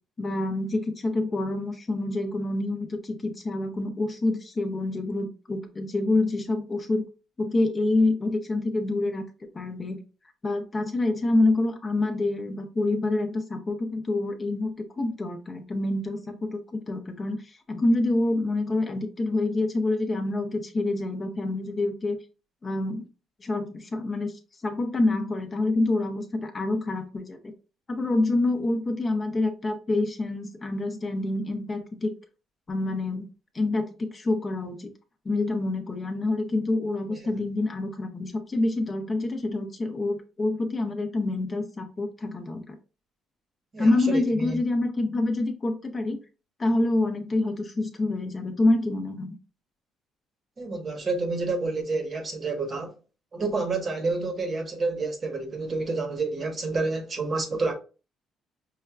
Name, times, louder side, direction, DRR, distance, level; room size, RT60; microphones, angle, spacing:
voice 1, 0.2-7.0 7.4-9.3 9.5-10.0 10.4-22.2 22.6-23.0 23.4-24.3 24.6-27.5 27.9-32.1 32.7-33.3 33.5-34.9 35.3-42.8 43.8-46.2 46.6-49.3, left 2 dB, 25° left, 0.5 m, -27 dB
voice 2, 43.7-44.6 50.6-52.9 53.3-57.7, right 3 dB, 35° right, 0.9 m, -29 dB
5.5 x 2.2 x 2.3 m
cardioid pair, 135°, 0 cm